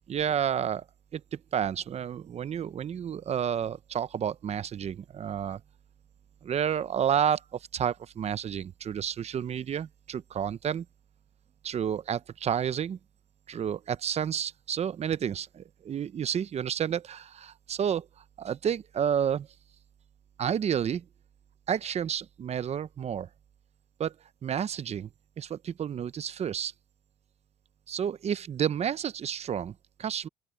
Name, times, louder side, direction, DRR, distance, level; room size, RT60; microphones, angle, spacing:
voice 1, 0.1-0.8 1.1-5.6 6.4-10.9 11.6-13.0 13.5-18.1 18.4-19.5 20.4-21.0 21.7-23.3 24.0-24.1 24.4-25.1 25.4-26.7 27.9-30.3, right 8 dB, 40° right, 0.7 m, -30 dB
open air
cardioid pair, 110°, 17 cm